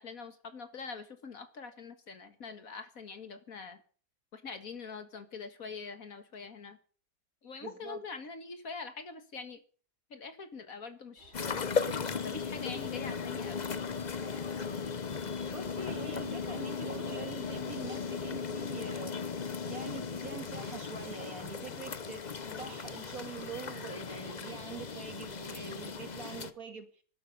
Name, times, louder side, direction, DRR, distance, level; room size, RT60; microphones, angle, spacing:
voice 1, 0.0-3.8 4.3-6.8 7.4-9.6 10.1-11.6 12.2-13.7 22.4-22.8, left 4 dB, 60° left, 2.1 m, -44 dB
voice 2, 7.6-8.0 15.5-19.2 19.6-26.9, right 5 dB, 60° right, 2.4 m, -44 dB
Train, 11.2-19.3, right 1 dB, 40° right, 4.3 m, -58 dB
sound 1, 11.3-26.5, left 5 dB, 35° left, 0.8 m, -37 dB
20.0 x 12.0 x 5.4 m
omnidirectional pair, 1.7 m